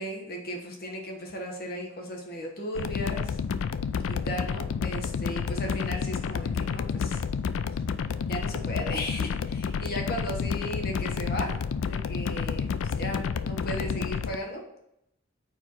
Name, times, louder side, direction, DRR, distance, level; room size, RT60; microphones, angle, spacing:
voice 1, 0.0-3.4 4.1-7.2 8.3-11.6 11.9-14.6, equal, 50° left, 1 dB, 1.1 m, -36 dB
sound 1, 2.8-14.4, left 6 dB, 85° left, 0.4 m, -30 dB
4.7 x 4.5 x 5.9 m, 0.80 s
head